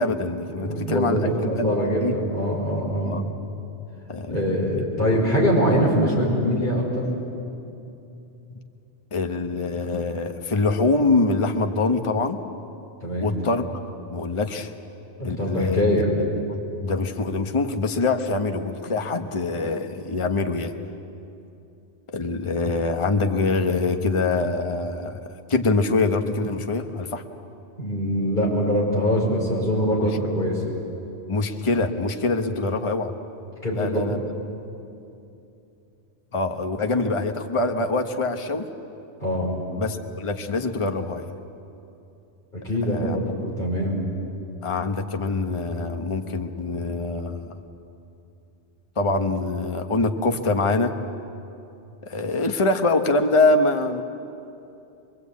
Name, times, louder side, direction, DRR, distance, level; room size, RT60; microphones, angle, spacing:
voice 1, 0.0-2.1 3.1-3.2 4.1-4.8 8.5-8.6 9.1-12.4 13.2-13.7 14.1-14.7 15.2-16.0 16.8-20.7 22.1-27.2 30.0-30.2 31.3-33.1 33.7-34.2 36.3-38.7 39.8-41.3 42.9-43.2 44.6-47.6 49.0-50.9 52.0-54.0, left 3 dB, 30° left, 6 dB, 1.0 m, -24 dB
voice 2, 0.6-3.2 4.3-7.1 13.0-13.3 15.2-16.1 27.8-30.6 33.6-34.0 39.2-39.5 42.5-44.0, equal, 45° left, -3 dB, 5.3 m, -23 dB
23.5 x 23.0 x 8.4 m, 2.8 s
omnidirectional pair, 1.2 m